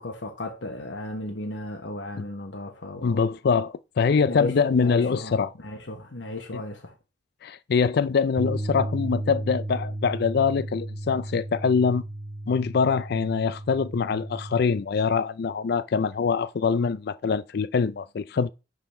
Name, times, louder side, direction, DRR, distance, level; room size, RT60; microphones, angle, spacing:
voice 1, 0.0-3.2 4.2-6.9, left 2 dB, 90° left, 1.2 m, -35 dB
voice 2, 3.0-5.5 6.5-6.6 7.4-12.0 12.5-18.5, left 5 dB, 60° left, 0.4 m, -24 dB
Bass guitar, 8.4-14.6, right 1 dB, 20° right, 0.4 m, -34 dB
10.5 x 4.0 x 4.3 m
head